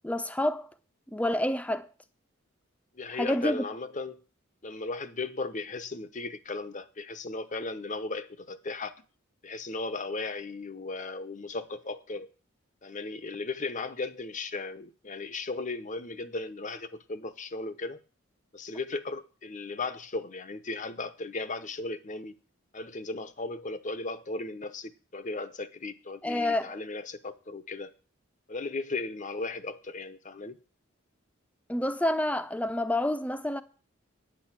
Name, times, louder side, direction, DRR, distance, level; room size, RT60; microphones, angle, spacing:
voice 1, 0.0-0.7 1.1-1.9 3.1-3.6 26.2-26.8 31.7-33.6, left 1 dB, 5° left, 0.8 m, -28 dB
voice 2, 2.9-4.2 4.6-8.9 9.4-12.3 12.8-18.0 18.5-22.3 22.7-27.9 28.5-30.6, left 3 dB, 40° left, 0.9 m, -36 dB
9.9 x 9.1 x 7.4 m
head